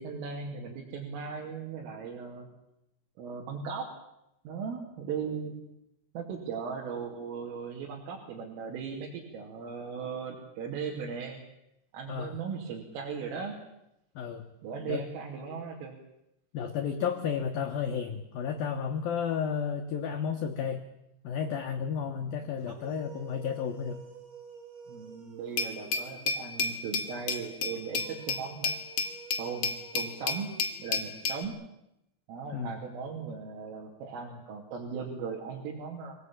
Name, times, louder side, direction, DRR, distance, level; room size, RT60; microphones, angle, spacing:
voice 1, 0.0-2.5 3.2-3.9 4.5-5.5 6.2-11.4 11.9-13.6 14.6-16.0 22.2-22.5 24.9-28.8 29.4-30.5 30.8-31.6 32.3-36.2, right 6 dB, 75° right, -1 dB, 5.3 m, -38 dB
voice 2, 14.2-14.5 14.9-15.0 16.5-20.8 21.2-24.0 32.5-32.8, left 7 dB, 70° left, 5 dB, 2.3 m, -32 dB
sound 1, 22.6-26.3 27.7-31.3, right 5 dB, 30° right, 3.2 m, -50 dB
Glass, 25.6-31.4, left 4 dB, 50° left, 2.0 m, -32 dB
25.5 x 18.5 x 8.8 m, 0.86 s
omnidirectional pair, 6.0 m